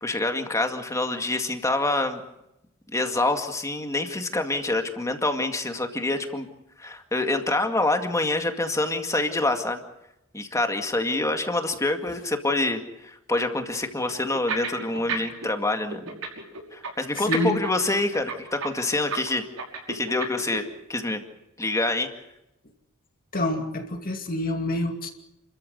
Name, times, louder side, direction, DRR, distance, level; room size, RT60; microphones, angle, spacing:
voice 1, 0.0-2.2 2.9-6.5 6.8-9.8 10.3-16.2 16.7-19.4 19.9-21.2 21.6-22.1, left 2 dB, 15° left, 6 dB, 2.1 m, -26 dB
sound 1, 14.3-15.5 15.7-20.6, right 5 dB, 80° right, 5.7 m, -31 dB
voice 2, 17.2-17.6 23.3-25.1, left 1 dB, 45° left, 4 dB, 2.5 m, -27 dB
29.5 x 14.0 x 8.0 m, 0.87 s
head